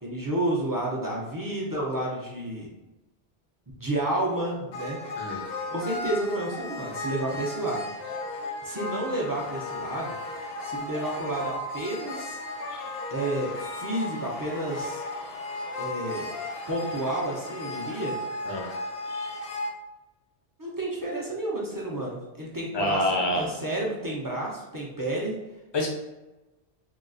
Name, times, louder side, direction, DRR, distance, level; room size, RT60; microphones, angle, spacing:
voice 1, 0.0-2.7 3.8-5.0 5.7-7.9 8.6-10.2 10.6-12.4 13.1-15.0 15.8-16.3 16.7-18.1 20.6-25.3, right 1 dB, 30° right, -3 dB, 0.4 m, -30 dB
sound 1, 4.7-19.7, left 2 dB, 70° left, 0.7 m, -35 dB
voice 2, 5.2-5.5 18.5-18.8 22.7-23.5 25.7-25.9, left 1 dB, 35° left, 0 dB, 0.5 m, -27 dB
3.7 x 2.3 x 2.5 m, 1.0 s
omnidirectional pair, 1.1 m